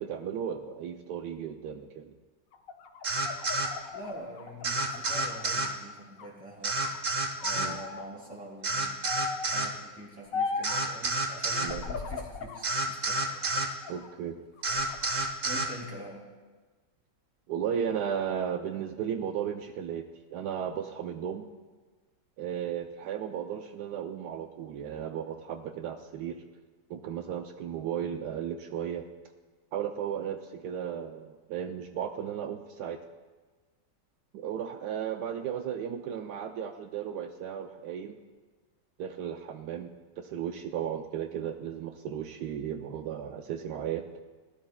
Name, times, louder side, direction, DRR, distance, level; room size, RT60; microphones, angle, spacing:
voice 1, 0.0-2.1 7.6-7.8 11.6-11.8 13.9-14.4 17.5-20.0 20.3-21.5 22.4-26.4 26.9-29.0 29.7-33.0 34.3-38.2 39.0-39.9 40.2-44.0, right 8 dB, 75° right, 6 dB, 1.2 m, -35 dB
sound 1, 2.5-5.7 6.1-7.0 7.4-8.0 9.0-9.6 10.3-10.9 11.6-12.7 13.1-14.1 14.6-15.3, left 4 dB, 60° left, 1.1 m, -38 dB
sound 2, 3.0-3.7 4.6-5.7 6.6-7.7 8.6-9.7 10.6-11.7 12.6-13.7 14.6-15.7, right 2 dB, 45° right, 0.6 m, -29 dB
voice 2, 3.9-6.8 7.4-9.0 9.4-13.3 15.4-16.2, equal, 5° right, -3 dB, 2.8 m, -44 dB
18.5 x 12.0 x 2.3 m, 1.3 s
omnidirectional pair, 1.8 m